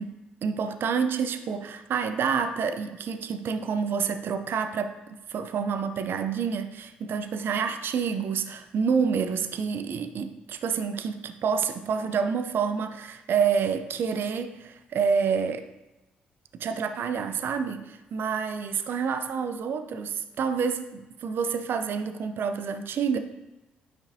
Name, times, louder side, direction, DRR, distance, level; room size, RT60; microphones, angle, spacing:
voice 1, 0.0-4.9 5.3-15.7 16.5-23.2, right 6 dB, 55° right, 9 dB, 0.5 m, -28 dB
9.5 x 4.9 x 2.7 m, 1.0 s
hypercardioid pair, 45°, 4 cm